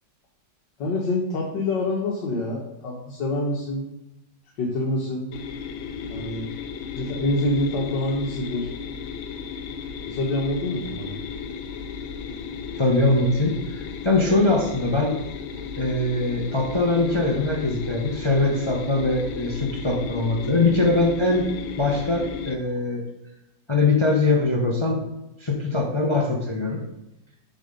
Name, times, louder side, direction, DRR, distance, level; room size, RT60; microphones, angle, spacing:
voice 1, 0.8-3.9 4.6-5.3 6.1-6.5 6.9-8.7 10.1-11.2, left 1 dB, 65° left, -2 dB, 1.8 m, -26 dB
sound 1, 5.3-22.6, left 6 dB, 85° left, 1.5 m, -34 dB
voice 2, 12.8-15.2 15.8-21.5 21.8-23.0 23.7-25.0 25.4-26.8, left 2 dB, 30° left, 0 dB, 0.6 m, -22 dB
7.5 x 5.1 x 5.2 m, 0.89 s
omnidirectional pair, 2.1 m